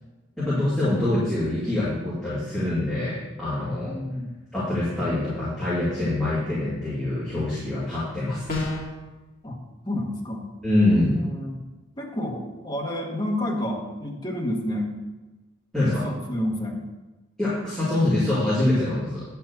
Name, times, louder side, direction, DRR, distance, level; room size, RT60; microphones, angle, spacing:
voice 1, 0.4-4.0 4.5-8.6 10.6-11.2 15.7-16.1 17.4-19.2, left 1 dB, ahead, -12 dB, 2.5 m, -24 dB
voice 2, 3.9-4.4 9.4-9.6 9.8-10.5 11.0-11.6 12.0-14.9 16.0-16.8, left 1 dB, 20° left, 0 dB, 1.2 m, -30 dB
sound 1, 8.5-9.0, left 2 dB, 45° left, 2.1 m, -28 dB
9.3 x 4.6 x 6.9 m, 1.1 s
head